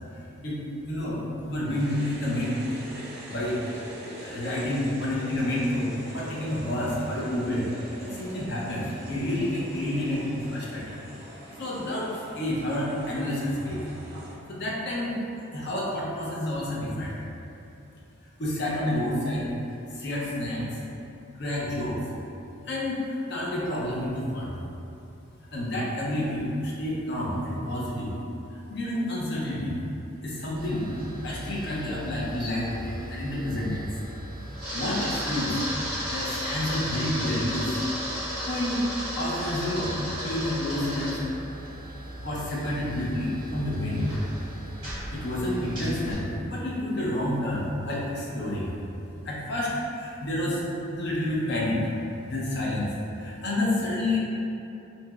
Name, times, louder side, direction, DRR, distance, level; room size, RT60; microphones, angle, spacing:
voice 1, 0.4-2.5 3.3-3.6 4.2-7.7 8.0-10.9 11.6-13.8 14.5-15.2 15.5-17.2 18.4-19.5 19.9-20.8 21.4-22.0 22.7-24.6 25.5-28.1 28.5-29.8 30.2-30.9 31.2-33.9 34.7-35.6 36.1-37.8 38.5-38.8 39.2-39.9 40.2-41.2 42.2-44.2 45.1-48.7 49.2-50.6 51.0-51.9 52.3-52.9 53.2-54.2, left 1 dB, 55° left, -5 dB, 0.5 m, -29 dB
sound 1, 1.6-14.3, right 1 dB, 45° right, 0.5 m, -43 dB
Camera, 30.6-46.1, equal, 25° right, 1.2 m, -35 dB
2.9 x 2.7 x 2.3 m, 2.8 s
head